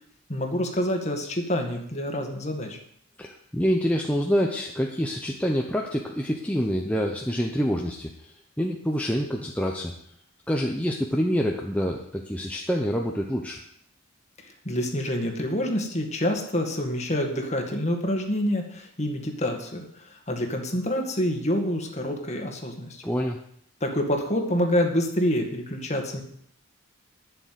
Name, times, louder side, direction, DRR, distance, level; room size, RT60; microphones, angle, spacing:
voice 1, 0.3-2.8 14.4-23.0 23.8-26.2, equal, 30° left, 3 dB, 2.0 m, -27 dB
voice 2, 3.2-8.3 8.6-9.9 10.5-13.6 23.0-23.4, equal, 5° left, 0 dB, 0.9 m, -26 dB
11.5 x 6.9 x 9.4 m, 0.69 s
head